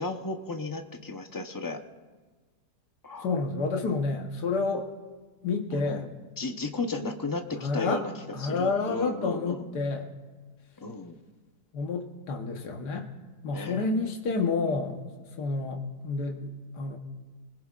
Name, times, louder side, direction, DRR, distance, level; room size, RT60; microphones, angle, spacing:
voice 1, 0.0-1.8 3.0-3.3 5.7-6.1 6.4-8.1 8.4-9.8 10.8-11.2 13.5-13.9, left 3 dB, 20° left, 5 dB, 0.6 m, -34 dB
voice 2, 3.2-4.9 5.4-6.0 7.6-8.0 8.3-10.1 11.7-13.1 13.4-15.0 15.4-17.0, left 4 dB, 85° left, 3 dB, 1.7 m, -29 dB
27.5 x 20.5 x 2.4 m, 1.3 s
omnidirectional pair, 1.7 m